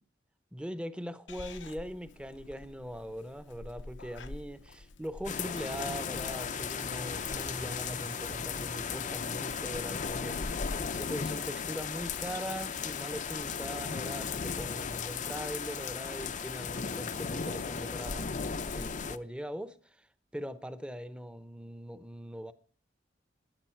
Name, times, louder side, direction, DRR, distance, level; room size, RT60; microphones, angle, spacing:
voice 1, 0.5-10.4 10.9-18.3 18.7-20.1 20.3-22.5, equal, 5° right, 0.7 m, -41 dB
Purr / Meow, 1.3-7.4, left 2 dB, 75° left, 0.8 m, -49 dB
sound 1, 5.2-19.2, left 6 dB, 40° left, 0.6 m, -36 dB
sound 2, 6.0-11.0, equal, 40° right, 1.2 m, -50 dB
15.0 x 9.9 x 4.5 m
head